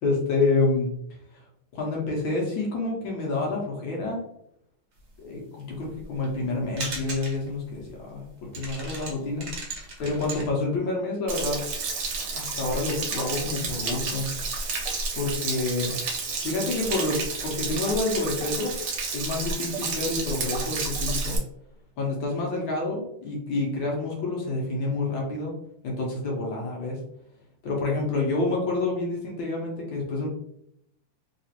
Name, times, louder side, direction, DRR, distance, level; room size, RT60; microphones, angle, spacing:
voice 1, 0.0-0.9 1.7-4.2 5.2-9.5 10.0-11.6 12.3-14.3 15.1-15.9 16.4-18.7 19.1-21.4 22.0-25.5 25.8-27.0 27.6-30.3, left 3 dB, 65° left, -2 dB, 1.5 m, -28 dB
sound 1, 5.6-6.5 6.8-7.5 7.8-7.9 8.2-8.3 8.5-10.5, right 2 dB, 45° right, 0.9 m, -37 dB
Stream / Splash splatter / Trickle dribble, 11.3-21.4, right 4 dB, 90° right, 1.7 m, -31 dB
3.9 x 2.9 x 2.8 m, 0.74 s
omnidirectional pair, 2.4 m